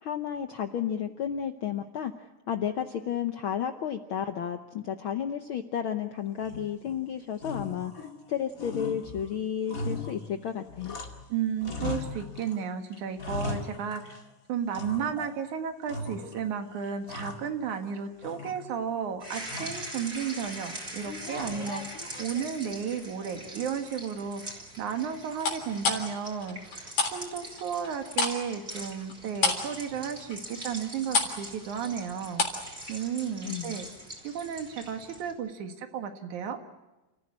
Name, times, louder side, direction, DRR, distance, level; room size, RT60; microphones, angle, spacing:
voice 1, 0.0-11.0 33.4-33.8, left 9 dB, 65° left, 7 dB, 1.3 m, -32 dB
sound 1, 6.4-7.0 7.4-8.3 8.6-11.3 11.6-12.6 12.9-14.3 14.7-15.4 15.9-16.5 16.8-17.9 18.2-18.9 19.5-19.9 21.3-21.9, left 3 dB, 30° left, 2.3 m, -38 dB
voice 2, 11.3-14.2 14.5-32.4 32.9-33.9 34.2-36.6, right 7 dB, 85° right, 6 dB, 3.1 m, -33 dB
sound 2, 19.2-35.3, right 1 dB, 20° right, 3.9 m, -43 dB
sound 3, 21.0-22.7 23.2-23.6 25.4-27.2 27.4-32.7 32.9-33.1, left 4 dB, 85° left, 5.0 m, -31 dB
29.5 x 15.0 x 9.8 m, 1.1 s
omnidirectional pair, 3.3 m